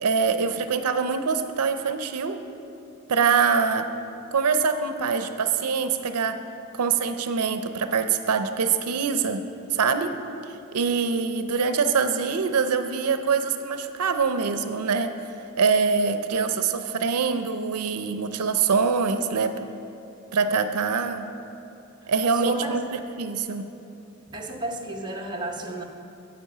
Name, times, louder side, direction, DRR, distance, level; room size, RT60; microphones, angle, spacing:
voice 1, 0.0-2.4 3.1-3.9 4.3-6.4 6.7-9.4 9.7-10.1 10.7-15.1 15.6-19.5 20.3-21.3 22.1-22.8 23.2-23.6, right 5 dB, 85° right, 8 dB, 0.5 m, -24 dB
voice 2, 22.0-22.8 24.3-25.8, right 1 dB, 20° right, 1 dB, 0.9 m, -33 dB
10.0 x 7.8 x 5.6 m, 2.8 s
head